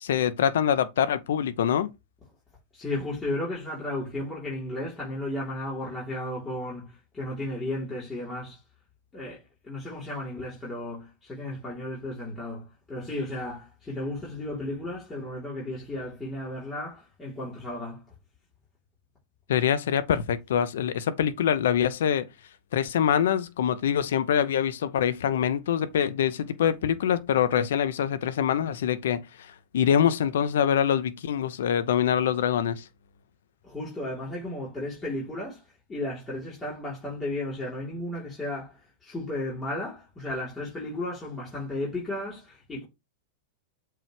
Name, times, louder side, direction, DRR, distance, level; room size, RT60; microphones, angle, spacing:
voice 1, 0.0-1.9 19.5-22.3 22.7-32.8, left 9 dB, 70° left, 0.8 m, -25 dB
voice 2, 2.7-8.6 9.1-18.0 33.6-35.6 35.9-42.9, left 1 dB, 20° left, 3.8 m, -34 dB
7.5 x 4.7 x 3.3 m
hypercardioid pair, 105°, 0 cm